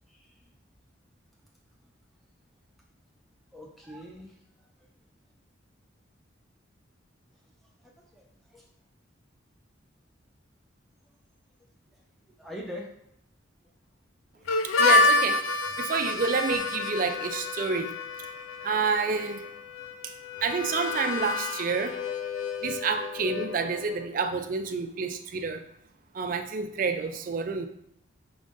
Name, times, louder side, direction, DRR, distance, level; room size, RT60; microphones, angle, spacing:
voice 1, 0.1-0.5 1.8-1.9 3.5-4.9 7.3-8.7 11.9-12.0 12.4-13.0 14.3-14.5, equal, ahead, -2 dB, 0.7 m, -45 dB
Harmonica, 14.5-24.1, left 3 dB, 85° left, 0.4 m, -28 dB
voice 2, 14.8-15.4 15.8-18.0 18.6-19.5 20.0-20.2 20.4-22.0 22.6-25.6 26.1-27.7, right 5 dB, 40° right, 7 dB, 0.3 m, -29 dB
5.1 x 2.5 x 3.7 m, 0.76 s
head